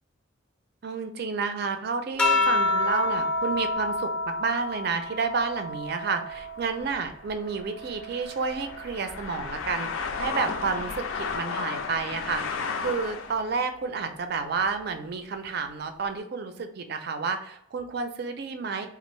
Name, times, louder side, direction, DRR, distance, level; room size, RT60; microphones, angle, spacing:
voice 1, 0.8-18.9, right 5 dB, 50° right, 7 dB, 0.4 m, -30 dB
sound 1, 2.2-7.0 7.4-9.2 10.4-10.9, left 2 dB, 5° left, 0.5 m, -29 dB
sound 2, 6.3-13.5, left 5 dB, 75° left, 0.4 m, -34 dB
3.4 x 2.4 x 3.0 m, 0.73 s
head